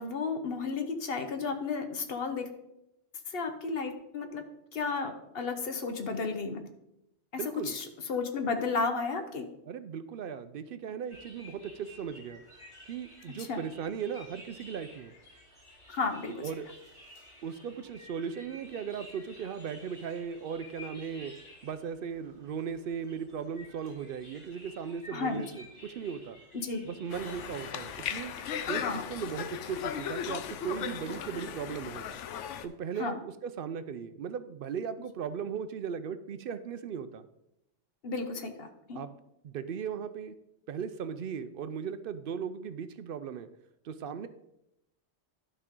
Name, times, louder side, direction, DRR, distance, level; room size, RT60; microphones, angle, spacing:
voice 1, 0.0-2.5 3.3-4.4 4.7-6.7 7.4-9.5 13.4-13.6 15.9-16.5 25.1-25.4 26.5-26.9 28.8-29.0 33.0-33.2 38.0-39.0, left 4 dB, 55° left, 7 dB, 1.1 m, -33 dB
voice 2, 7.4-7.8 9.7-12.4 12.9-15.1 16.4-16.7 17.4-21.3 21.6-26.4 26.8-28.3 28.7-32.1 32.6-37.2 38.9-39.1 39.4-40.3 40.7-43.5 43.8-44.3, right 7 dB, 60° right, 12 dB, 0.6 m, -37 dB
sound 1, 11.1-28.7, left 1 dB, 25° left, 3.0 m, -53 dB
Conversation, 27.1-32.7, left 9 dB, 85° left, 0.9 m, -37 dB
12.0 x 5.5 x 3.7 m, 0.86 s
omnidirectional pair, 1.2 m